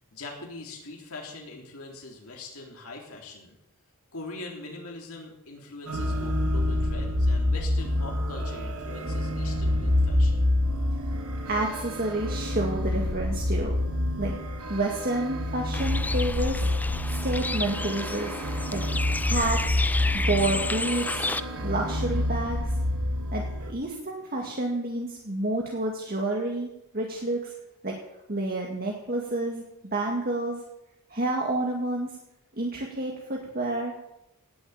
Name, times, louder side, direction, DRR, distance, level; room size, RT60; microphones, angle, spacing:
voice 1, 0.1-3.6 4.1-10.4, left 2 dB, 70° left, 0 dB, 3.5 m, -42 dB
sound 1, 5.9-23.7, left 1 dB, 85° right, 2.3 m, -27 dB
voice 2, 11.5-13.7 14.2-14.3 14.7-16.7 17.1-18.4 18.7-18.8 19.2-19.6 20.1-21.3 21.6-22.7 23.3-27.5 27.8-27.9 28.3-29.6 29.9-30.6 31.1-32.1 32.6-33.9, right 2 dB, 45° right, 0 dB, 2.1 m, -29 dB
Bird, 15.7-21.4, left 2 dB, 5° left, 0.4 m, -32 dB
18.0 x 7.9 x 8.8 m, 0.88 s
head